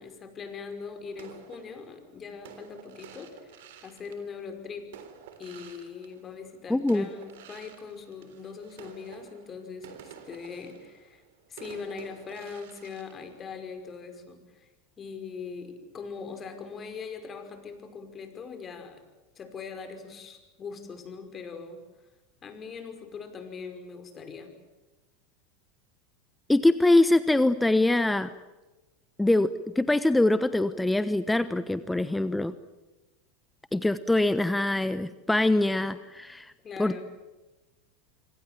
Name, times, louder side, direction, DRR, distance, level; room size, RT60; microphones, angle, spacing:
voice 1, 0.0-4.9 5.4-11.2 11.5-14.7 15.0-19.0 19.4-21.8 22.4-24.5 36.6-37.0, left 5 dB, 30° left, 7 dB, 5.3 m, -41 dB
sound 1, 1.2-6.5 6.9-14.0, right 8 dB, 70° right, 3.6 m, -50 dB
voice 2, 6.7-7.1 26.5-28.3 29.2-32.5 33.7-36.5 36.8-37.0, left 2 dB, 5° left, 13 dB, 1.0 m, -23 dB
26.5 x 25.5 x 7.5 m, 1.1 s
hypercardioid pair, 85°, 0 cm